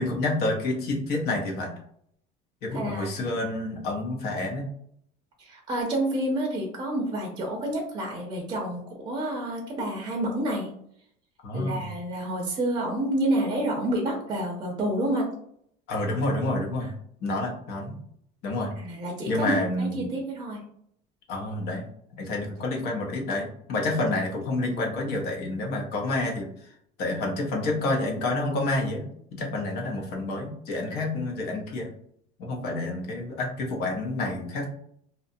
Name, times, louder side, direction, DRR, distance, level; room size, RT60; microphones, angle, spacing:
voice 1, 0.0-1.7 2.6-4.7 11.4-11.8 15.9-16.9 17.2-18.0 18.4-18.8 19.3-20.1 21.3-21.8 22.1-26.7 27.0-29.1 29.3-31.9 32.4-34.7, left 2 dB, 55° left, 1 dB, 0.8 m, -28 dB
voice 2, 2.7-3.2 5.4-10.7 11.5-15.3 18.8-19.5 19.8-20.6, right 1 dB, 20° right, -1 dB, 0.6 m, -29 dB
2.7 x 2.2 x 2.6 m, 0.67 s
cardioid pair, 140°, 20 cm